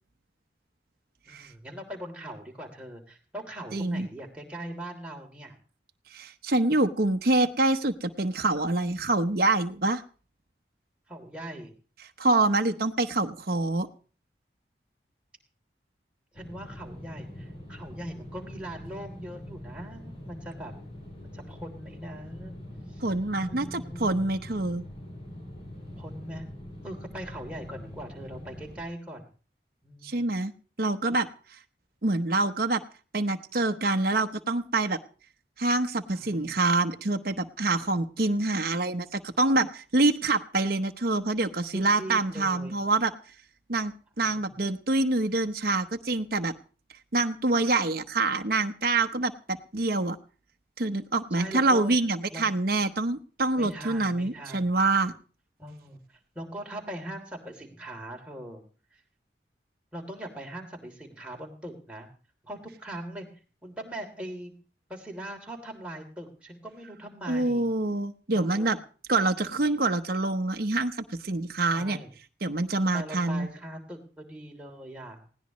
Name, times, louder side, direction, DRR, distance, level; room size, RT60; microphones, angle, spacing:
voice 1, 1.2-5.5 11.1-11.7 16.3-20.7 21.2-22.6 22.9-23.0 23.5-24.1 26.0-26.4 26.8-29.3 29.8-30.3 36.1-36.6 41.7-42.8 44.2-44.6 45.6-45.7 51.3-52.0 52.3-52.4 53.6-54.8 55.6-58.6 58.9-59.0 59.9-62.1 62.4-63.3 63.6-64.5 64.9-67.7 68.3-68.7 71.7-72.1 72.9-75.2, right 1 dB, 5° right, 0 dB, 3.2 m, -41 dB
voice 2, 3.7-4.1 6.1-10.0 12.2-13.9 23.0-24.8 30.0-30.5 30.8-31.3 32.0-32.8 33.1-35.0 35.6-43.1 43.7-46.5 47.1-50.2 50.8-55.1 67.3-68.8 69.1-72.0 72.4-73.5, right 2 dB, 55° right, 6 dB, 1.0 m, -26 dB
sound 1, 16.4-28.8, left 1 dB, 30° left, 5.6 m, -43 dB
20.0 x 17.0 x 3.1 m, 0.38 s
head